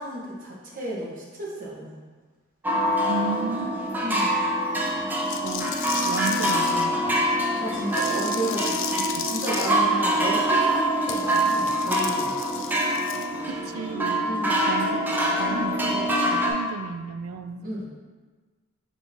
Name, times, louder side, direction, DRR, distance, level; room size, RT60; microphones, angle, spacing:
voice 1, 0.0-2.0 4.0-4.3 7.6-8.9 9.2-12.3 14.2-14.6 17.6-17.9, right 1 dB, 40° right, -5 dB, 1.1 m, -32 dB
sound 1, 2.6-16.5, right 1 dB, 10° right, 0.5 m, -25 dB
voice 2, 3.1-3.8 5.4-5.8 6.1-7.2 9.1-9.3 13.5-14.2 14.7-15.0 15.4-17.7, right 5 dB, 85° right, 9 dB, 0.3 m, -33 dB
sound 2, 5.3-6.8 7.9-9.7 11.1-13.3, left 8 dB, 65° left, 0.3 m, -34 dB
6.1 x 3.3 x 2.7 m, 1.4 s
head